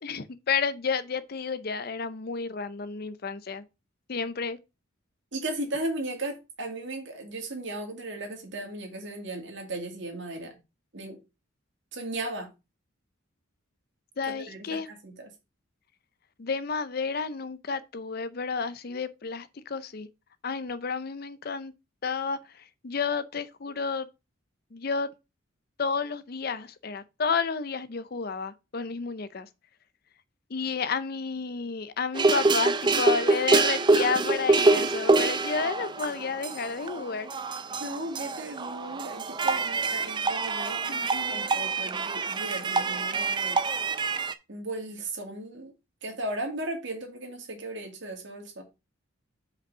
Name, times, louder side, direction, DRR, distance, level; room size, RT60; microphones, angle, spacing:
voice 1, 0.0-3.6 4.1-4.6 14.2-14.9 16.4-20.1 20.4-21.7 22.0-24.1 24.7-25.1 25.8-29.5 30.5-37.3 40.9-41.4, left 5 dB, 45° left, 0.5 m, -31 dB
voice 2, 5.3-10.5 10.9-11.2 11.9-12.5 14.3-15.3 37.8-40.8 41.3-43.6 44.5-45.7 46.0-48.6, right 2 dB, 60° right, 2.2 m, -36 dB
sound 1, 32.1-44.3, right 3 dB, 20° right, 0.4 m, -26 dB
5.3 x 5.2 x 5.5 m
head